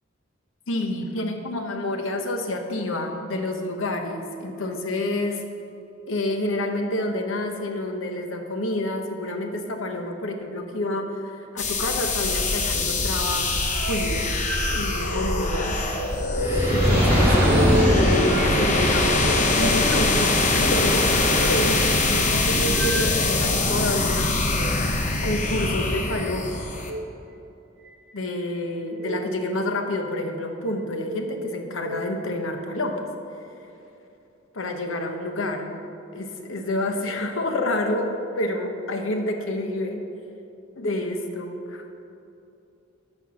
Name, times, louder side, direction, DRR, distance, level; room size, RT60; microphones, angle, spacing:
voice 1, 0.7-5.4 6.1-13.5 13.9-14.3 14.7-15.8 16.7-17.4 17.8-21.1 21.4-24.3 25.2-26.6 28.1-33.0 34.5-35.8 36.1-40.0 40.8-41.8, left 1 dB, 85° left, 4 dB, 1.0 m, -28 dB
sound 1, 11.6-26.9, left 2 dB, 35° left, 0.8 m, -23 dB
sound 2, 13.7-23.7 24.4-24.7 26.7-27.0 27.9-28.4 28.9-29.2 30.0-30.5 31.0-32.0, right 1 dB, 60° right, 0.5 m, -32 dB
Fire, 16.3-22.7 23.4-23.5, equal, 10° right, 2.2 m, -24 dB
13.0 x 4.5 x 6.2 m, 2.8 s
head